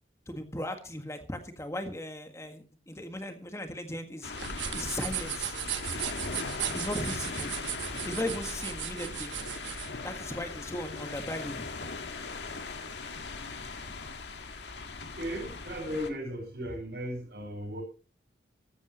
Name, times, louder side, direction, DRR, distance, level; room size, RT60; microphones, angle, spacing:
voice 1, 0.3-4.3 4.7-5.6 6.7-7.5 8.0-9.3 10.0-11.6, left 1 dB, 15° left, 6 dB, 1.7 m, -37 dB
sound 1, 4.2-16.1, left 4 dB, 75° left, 1.7 m, -39 dB
sound 2, 4.3-9.9, right 10 dB, 90° right, 1.1 m, -37 dB
voice 2, 15.1-17.8, equal, 60° right, -4 dB, 4.8 m, -36 dB
14.0 x 14.0 x 3.0 m, 0.37 s
head